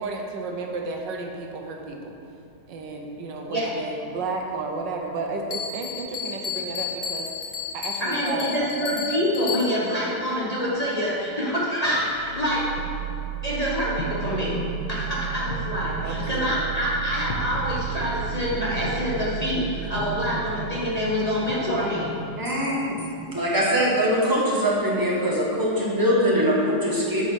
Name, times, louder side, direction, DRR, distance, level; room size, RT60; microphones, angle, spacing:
voice 1, 0.0-2.2 2.7-7.3 7.7-8.5 16.0-16.6, right 3 dB, 90° right, 2 dB, 1.6 m, -32 dB
Bell, 5.5-10.0, left 6 dB, 50° left, 1.2 m, -32 dB
voice 2, 8.0-12.8 13.4-22.1, equal, 25° left, -6 dB, 1.4 m, -26 dB
sound 1, 12.1-24.0, right 5 dB, 70° left, 1.6 m, -33 dB
voice 3, 22.4-23.0 23.3-27.2, equal, 10° right, -5 dB, 1.5 m, -22 dB
7.5 x 6.8 x 5.9 m, 2.6 s
omnidirectional pair, 1.9 m